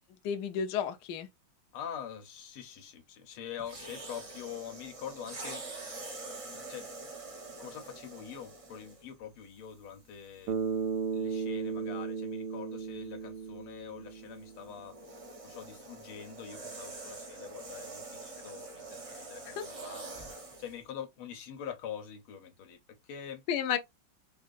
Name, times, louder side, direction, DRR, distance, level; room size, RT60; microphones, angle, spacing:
voice 1, 0.2-1.3 19.5-19.6 23.5-23.8, left 8 dB, 65° left, 1.1 m, -32 dB
voice 2, 1.7-5.7 6.5-6.9 7.6-10.6 11.1-15.0 15.4-20.2 20.6-23.4, left 8 dB, 85° left, 1.8 m, -44 dB
sound 1, 3.6-9.1 9.9-10.1 14.1-20.8, right 3 dB, 45° right, 0.4 m, -45 dB
Bass guitar, 10.5-14.7, right 5 dB, 70° right, 1.0 m, -35 dB
4.8 x 2.7 x 2.5 m
omnidirectional pair, 2.3 m